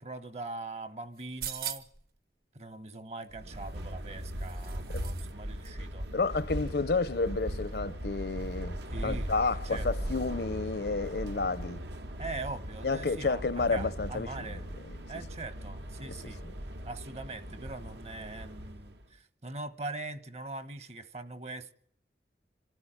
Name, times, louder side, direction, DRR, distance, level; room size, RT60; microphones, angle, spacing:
voice 1, 0.0-1.9 2.5-6.1 8.9-10.1 12.2-14.7 15.1-16.4 16.8-21.7, right 2 dB, 40° right, 1.0 m, -42 dB
sound 1, 1.2-2.1 3.6-5.3 5.6-5.7, right 9 dB, 60° right, 1.3 m, -41 dB
sound 2, 3.3-19.0, equal, 80° right, 1.4 m, -39 dB
voice 2, 6.1-11.8 12.8-14.6, left 3 dB, 65° left, 0.8 m, -31 dB
26.0 x 13.5 x 8.8 m
head